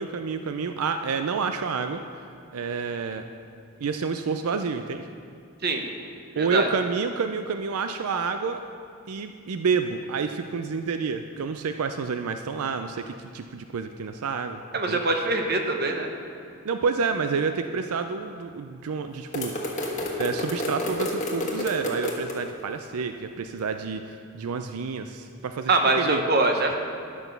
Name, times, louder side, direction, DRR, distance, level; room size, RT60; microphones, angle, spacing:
voice 1, 0.0-2.0 2.5-3.2 3.8-5.1 6.4-8.6 9.1-14.6 14.9-15.0 16.6-19.5 20.2-25.7 26.0-26.2, right 5 dB, 85° right, 7 dB, 0.4 m, -29 dB
voice 2, 6.4-6.7 14.7-16.1 25.7-26.7, right 2 dB, 45° right, 3 dB, 1.0 m, -23 dB
sound 1, 19.3-22.4, left 1 dB, 35° left, 1.3 m, -30 dB
11.0 x 6.0 x 6.7 m, 2.5 s
head